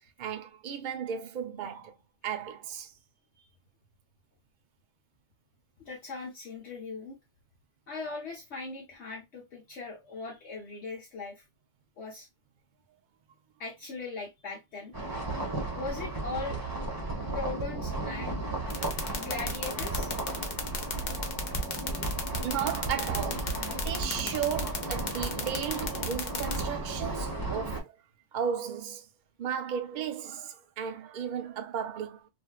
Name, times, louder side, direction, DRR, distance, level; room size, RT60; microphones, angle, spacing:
voice 1, 0.2-1.9 2.2-2.9 18.7-18.9 22.4-27.9 28.3-29.1 29.4-32.3, right 8 dB, 60° right, 0.5 m, -35 dB
voice 2, 5.8-7.2 7.9-11.4 12.0-12.3 13.6-14.9 15.7-16.6 17.3-18.4 19.1-20.1 20.4-20.5, left 3 dB, 60° left, 1.1 m, -39 dB
sound 1, 14.9-27.8, right 2 dB, 20° right, 0.8 m, -34 dB
sound 2, 18.7-26.6, left 6 dB, 45° left, 0.7 m, -33 dB
3.3 x 2.5 x 2.2 m
omnidirectional pair, 1.3 m